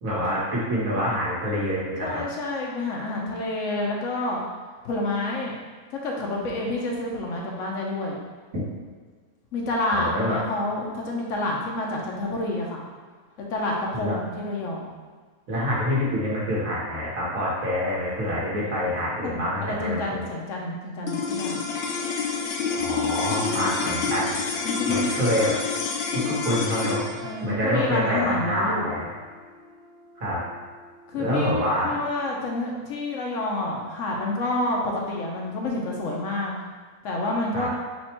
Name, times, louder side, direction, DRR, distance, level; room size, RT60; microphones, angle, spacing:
voice 1, 0.0-2.2 9.9-10.4 13.9-14.2 15.5-20.2 22.8-24.4 24.9-25.6 26.1-27.0 27.4-29.1 30.2-30.4 31.2-31.9 37.5-37.7, equal, 60° right, -6 dB, 1.6 m, -26 dB
voice 2, 2.0-4.4 4.8-5.6 6.0-8.2 9.5-12.8 13.4-14.9 18.7-18.8 19.2-21.6 23.3-24.1 24.6-25.0 27.2-29.0 31.1-31.6 31.8-36.6 37.0-37.7, left 2 dB, 60° left, -1 dB, 1.0 m, -29 dB
sound 1, 21.0-31.5, left 4 dB, 75° left, 0.5 m, -29 dB
4.3 x 2.4 x 4.3 m, 1.5 s
omnidirectional pair, 1.7 m